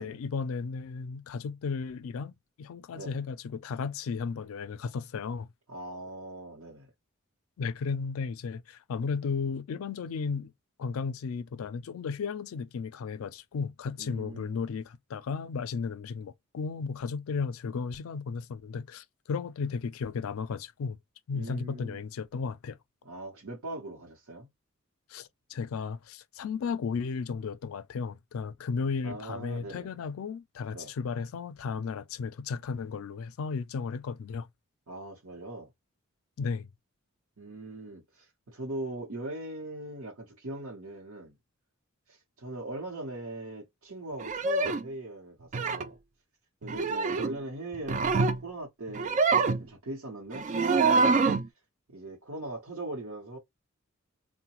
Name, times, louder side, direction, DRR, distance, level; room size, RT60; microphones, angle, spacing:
voice 1, 0.0-2.3 2.6-5.5 7.6-10.5 10.8-21.0 21.3-22.8 25.1-34.5 36.4-36.7, left 5 dB, 75° left, 0.4 m, -34 dB
voice 2, 2.9-3.2 5.7-6.9 14.0-14.6 21.3-22.0 23.0-24.5 29.0-29.9 30.7-30.9 34.9-35.7 37.4-41.4 42.1-46.0 46.6-51.2 51.9-53.4, right 2 dB, 85° right, 0.9 m, -40 dB
sound 1, 44.2-44.9 45.5-45.9 46.6-47.4 47.7-48.4 48.9-49.6 50.3-51.5, right 4 dB, 35° right, 0.3 m, -25 dB
3.8 x 2.1 x 2.9 m
head